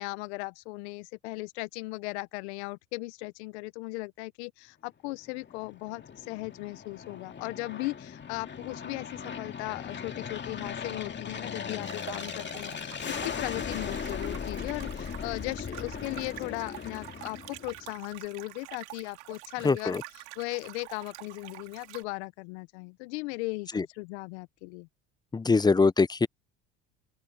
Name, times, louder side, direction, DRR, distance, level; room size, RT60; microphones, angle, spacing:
voice 1, 0.0-20.0 20.4-24.9, left 24 dB, 75° left, 1.1 m, -37 dB
Aircraft, 5.2-18.0, left 6 dB, 35° left, 2.3 m, -38 dB
sound 1, 11.8-22.0, right 22 dB, 80° right, 3.7 m, -47 dB
voice 2, 19.6-20.0 23.7-23.9 25.3-26.3, left 4 dB, 10° left, 0.5 m, -23 dB
open air
hypercardioid pair, 70°, 33 cm